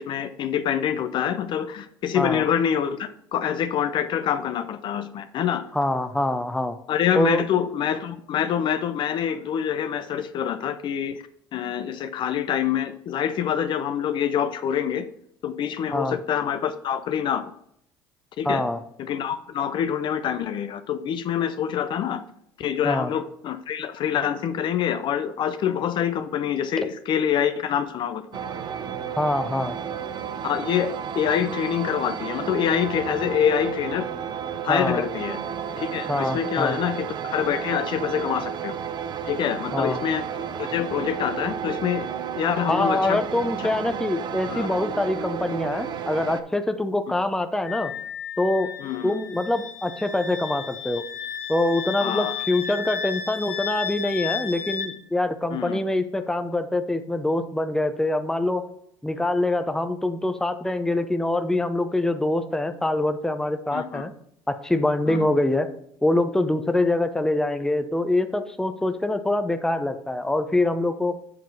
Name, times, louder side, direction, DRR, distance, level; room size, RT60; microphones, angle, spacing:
voice 1, 0.0-5.6 6.9-11.2 11.5-15.1 15.4-17.5 18.4-18.6 19.0-22.2 22.6-28.5 30.4-34.1 34.6-35.4 35.8-38.7 39.2-40.2 40.6-42.1 42.4-43.2 44.5-44.7 48.8-49.2 52.0-52.4 55.5-55.8 63.7-64.0 65.1-65.3, left 9 dB, 50° left, 11 dB, 0.5 m, -26 dB
voice 2, 5.7-6.8 7.1-7.5 15.9-16.2 18.4-18.8 22.8-23.1 29.1-29.8 34.7-35.0 36.1-36.8 39.7-40.0 42.7-47.9 48.4-48.7 49.0-51.0 51.5-58.6 59.0-64.1 64.5-65.7 66.0-71.2, left 1 dB, 5° left, 8 dB, 0.7 m, -24 dB
sound 1, 28.3-46.4, right 8 dB, 50° right, 0.6 m, -32 dB
Wind instrument woodwind instrument, 47.6-54.9, left 7 dB, 90° left, 1.4 m, -33 dB
7.6 x 3.7 x 5.9 m, 0.71 s
supercardioid pair, 80°, 10 cm